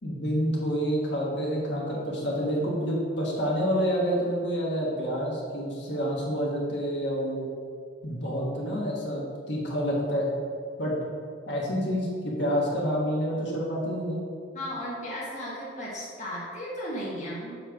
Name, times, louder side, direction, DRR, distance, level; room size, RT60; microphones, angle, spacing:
voice 1, 0.0-7.4 8.0-10.3 10.8-10.9 11.5-14.2, equal, 60° left, -4 dB, 1.4 m, -28 dB
voice 2, 14.5-17.6, equal, 35° left, -7 dB, 1.2 m, -35 dB
7.1 x 3.3 x 5.8 m, 2.2 s
head